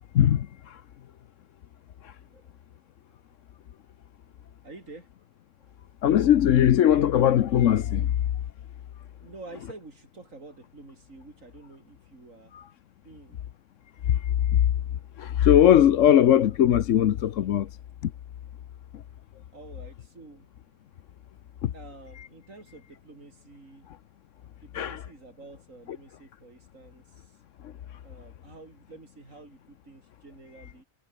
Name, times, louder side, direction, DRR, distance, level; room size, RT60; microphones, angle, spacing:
voice 1, 0.1-0.8 2.0-2.2 6.0-8.2 12.5-12.6 14.0-14.6 15.2-17.7 18.0-18.1 18.9-19.0 21.6-21.7 22.1-22.3 24.7-25.0 27.6-27.7, left 10 dB, 75° left, 1.1 m, -20 dB
voice 2, 2.2-2.5 3.1-3.2 4.2-5.1 5.6-5.9 9.2-12.5 13.0-13.4 19.5-20.7 21.7-23.9 24.6-27.4 28.0-30.8, right 3 dB, 90° right, 4.4 m, -49 dB
omnidirectional pair, 1.3 m